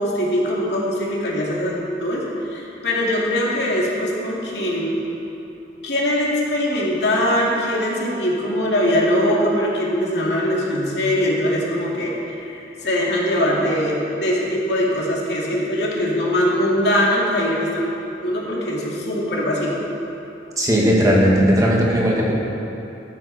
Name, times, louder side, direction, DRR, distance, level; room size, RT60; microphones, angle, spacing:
voice 1, 0.0-2.2 2.5-4.9 5.8-12.1 12.4-17.9 18.2-19.8, equal, 70° left, -4 dB, 2.6 m, -21 dB
voice 2, 20.6-22.3, equal, 20° right, -3 dB, 1.8 m, -17 dB
13.5 x 13.0 x 4.2 m, 2.9 s
head